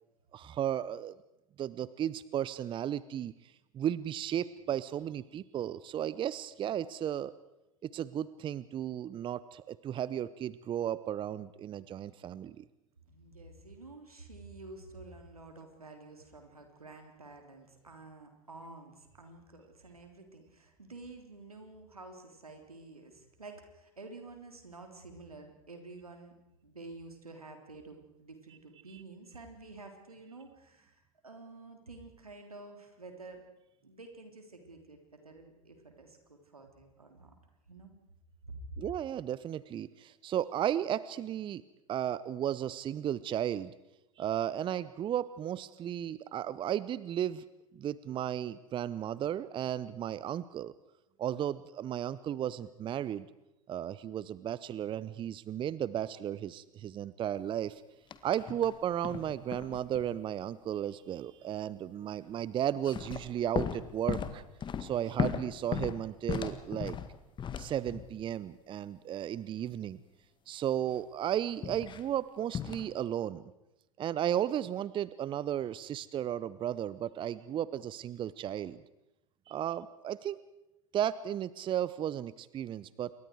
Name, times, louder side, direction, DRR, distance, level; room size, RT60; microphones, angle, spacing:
voice 1, 0.3-1.1 1.6-3.3 3.7-7.3 7.8-12.7 38.8-41.6 41.9-43.7 44.2-47.4 47.7-50.7 51.2-53.3 53.7-57.8 58.2-64.4 64.8-67.0 67.6-70.0 70.5-73.5 74.0-78.8 79.5-80.4 80.9-83.1, right 10 dB, 25° right, 18 dB, 0.7 m, -34 dB
voice 2, 13.1-26.4 26.6-33.4 33.8-37.3 37.7-38.0 38.5-38.8, right 3 dB, 85° right, 4 dB, 3.6 m, -50 dB
sound 1, 58.1-58.8 59.0-60.2 62.7-68.2 71.6-72.0 72.5-72.9, left 7 dB, 25° left, 1.6 m, -36 dB
27.5 x 23.0 x 4.8 m, 0.93 s
figure-of-eight pair, 85°, 18 cm